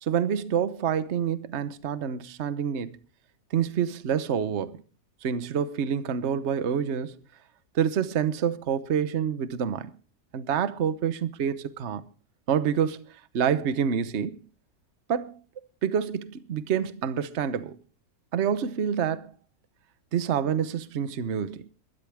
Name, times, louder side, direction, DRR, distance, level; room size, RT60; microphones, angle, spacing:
voice 1, 0.0-2.9 3.5-4.8 5.2-7.2 7.7-9.9 10.3-12.0 12.5-13.0 13.3-14.4 15.1-15.4 15.8-17.8 18.3-19.3 20.1-21.7, right 8 dB, 50° right, 1.1 m, -27 dB
22.0 x 13.0 x 3.5 m
omnidirectional pair, 1.7 m